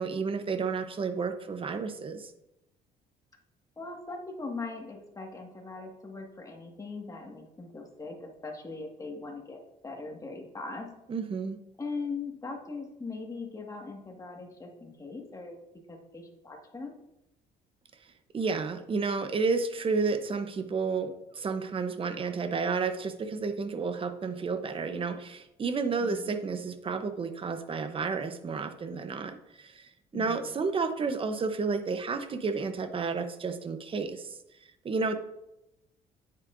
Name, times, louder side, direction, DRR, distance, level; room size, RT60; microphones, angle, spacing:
voice 1, 0.0-2.3 11.1-11.6 18.3-34.3 34.8-35.2, right 4 dB, 30° right, 9 dB, 0.9 m, -31 dB
voice 2, 3.8-10.9 11.8-15.6 15.9-16.9 26.0-26.3 30.1-30.5, left 3 dB, 20° left, 1 dB, 1.8 m, -40 dB
9.5 x 7.7 x 2.6 m, 0.87 s
cardioid pair, 110°, 17 cm